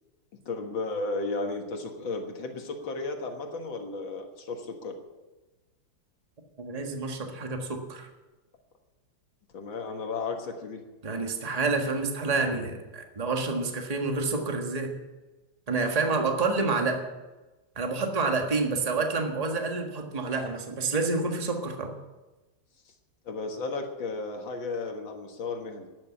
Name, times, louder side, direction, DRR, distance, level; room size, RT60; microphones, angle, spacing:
voice 1, 0.5-5.0 9.5-10.8 23.3-25.9, left 3 dB, 75° left, 3 dB, 2.2 m, -34 dB
voice 2, 6.6-8.1 11.0-15.0 15.7-17.0 17.7-21.9, right 3 dB, 20° right, 3 dB, 1.5 m, -28 dB
12.5 x 9.8 x 8.6 m, 1.1 s
omnidirectional pair, 2.1 m